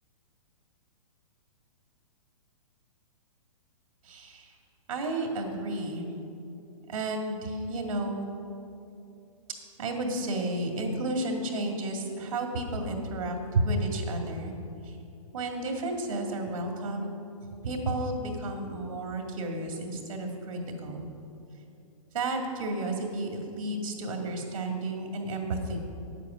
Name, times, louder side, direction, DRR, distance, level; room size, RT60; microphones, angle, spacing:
voice 1, 4.0-4.5 4.9-6.1 6.9-8.3 9.8-14.5 14.8-15.0 15.3-17.2 17.6-21.0 22.1-25.8, right 2 dB, 75° right, 2 dB, 2.2 m, -32 dB
9.5 x 8.4 x 6.3 m, 2.7 s
hypercardioid pair, 135°, 18 cm